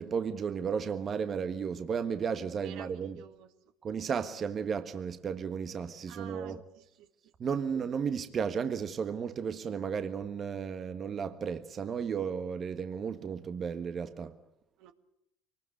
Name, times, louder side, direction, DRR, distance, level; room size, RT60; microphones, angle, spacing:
voice 1, 0.0-3.2 3.8-6.6 7.4-14.4, right 6 dB, 45° right, 1.5 m, -34 dB
voice 2, 2.6-3.5 6.1-7.7 14.8-14.9, right 10 dB, 70° right, 1.8 m, -52 dB
23.5 x 19.5 x 8.2 m
hypercardioid pair, 70°, 0 cm